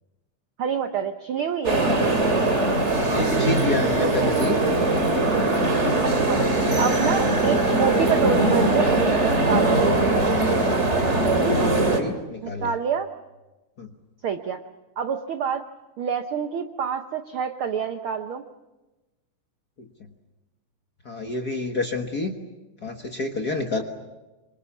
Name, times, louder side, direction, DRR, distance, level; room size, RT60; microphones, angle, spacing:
voice 1, 0.6-1.8 4.0-4.3 6.0-6.4 6.8-9.8 12.4-13.1 14.2-14.6 15.0-15.6 16.0-18.4, right 7 dB, 75° right, 7 dB, 1.2 m, -27 dB
sound 1, 1.6-12.0, right 2 dB, 20° right, 2.6 m, -21 dB
voice 2, 1.7-2.1 3.1-4.6 11.0-11.1 11.4-12.7 13.8-13.9 21.0-22.3 22.8-23.8, left 3 dB, 45° left, 4 dB, 1.3 m, -29 dB
26.5 x 25.5 x 7.2 m, 1.1 s
omnidirectional pair, 3.7 m